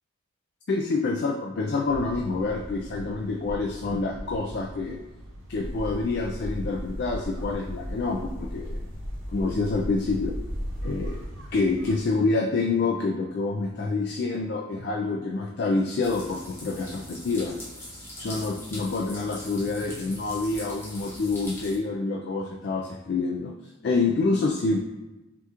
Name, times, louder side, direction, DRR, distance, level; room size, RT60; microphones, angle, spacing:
voice 1, 0.7-5.0 5.5-8.8 9.3-10.4 10.8-11.2 11.5-17.6 18.2-23.5 23.8-24.8, left 3 dB, 55° left, 1 dB, 0.4 m, -27 dB
sound 1, 1.9-12.0, equal, 85° right, 1.0 m, -41 dB
sound 2, 5.6-11.2, equal, 85° left, 1.2 m, -36 dB
sound 3, 16.0-21.8, left 1 dB, 10° left, 0.8 m, -42 dB
5.9 x 2.9 x 2.4 m, 1.1 s
head